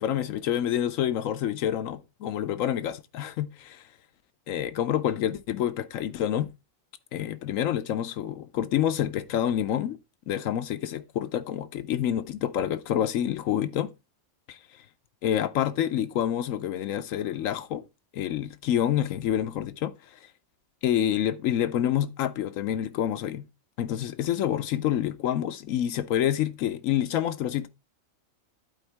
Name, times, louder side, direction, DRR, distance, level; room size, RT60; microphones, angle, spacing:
voice 1, 0.0-3.8 4.5-6.5 7.1-10.0 10.3-13.9 14.5-14.6 15.2-17.8 18.1-19.9 20.8-23.4 23.8-27.7, left 10 dB, 80° left, 1.0 m, -27 dB
11.5 x 4.6 x 3.3 m
omnidirectional pair, 1.4 m